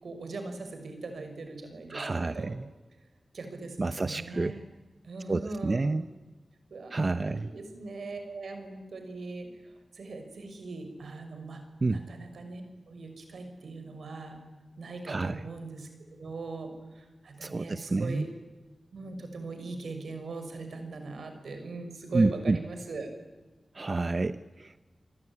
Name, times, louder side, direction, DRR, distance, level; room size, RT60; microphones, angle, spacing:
voice 1, 0.0-2.5 3.3-4.6 5.0-6.0 6.7-11.6 11.9-14.4 14.8-15.9 16.2-18.3 18.9-23.1, right 3 dB, 85° right, 6 dB, 6.1 m, -40 dB
voice 2, 1.9-2.7 3.8-4.5 5.3-6.1 6.9-7.5 11.8-12.0 15.1-15.4 17.4-18.3 22.1-22.6 23.7-24.8, right 3 dB, 40° right, 12 dB, 0.8 m, -29 dB
28.0 x 21.0 x 9.8 m, 1.2 s
wide cardioid pair, 100°, 0 cm